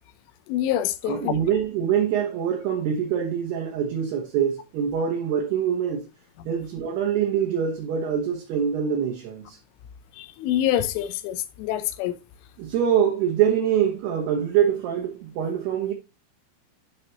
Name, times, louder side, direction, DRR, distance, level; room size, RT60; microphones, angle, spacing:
voice 1, 0.5-1.3 10.2-12.2, left 12 dB, 90° left, 3.3 m, -26 dB
voice 2, 1.1-6.1 6.5-9.6 12.6-15.9, right 8 dB, 70° right, 2.8 m, -24 dB
11.0 x 6.0 x 2.9 m
omnidirectional pair, 5.6 m